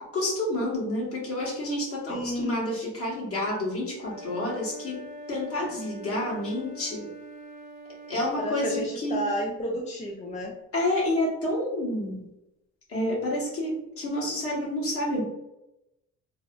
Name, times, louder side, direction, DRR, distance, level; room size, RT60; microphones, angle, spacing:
voice 1, 0.1-5.0 5.3-7.1 8.1-9.3 10.7-12.3 12.9-15.2, left 1 dB, 50° left, -4 dB, 1.2 m, -29 dB
voice 2, 2.1-2.6 8.4-10.5, equal, 25° left, 0 dB, 0.4 m, -31 dB
Wind instrument woodwind instrument, 3.9-8.6, right 1 dB, 25° right, 0.9 m, -43 dB
3.3 x 2.0 x 2.3 m, 0.90 s
cardioid pair, 90°, 30 cm